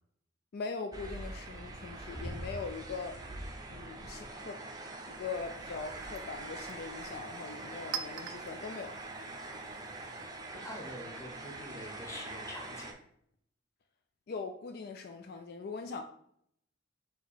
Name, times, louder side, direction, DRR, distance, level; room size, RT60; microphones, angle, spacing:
voice 1, 0.5-3.2 3.7-4.6 5.1-9.0 14.3-16.0, left 4 dB, 55° left, 0.3 m, -41 dB
sound 1, 0.9-12.9, right 2 dB, 20° right, 0.6 m, -43 dB
Chink clink, 5.0-10.5, right 8 dB, 75° right, 0.4 m, -47 dB
voice 2, 10.5-12.9, left 1 dB, 15° left, 0.9 m, -45 dB
4.2 x 2.9 x 4.0 m
head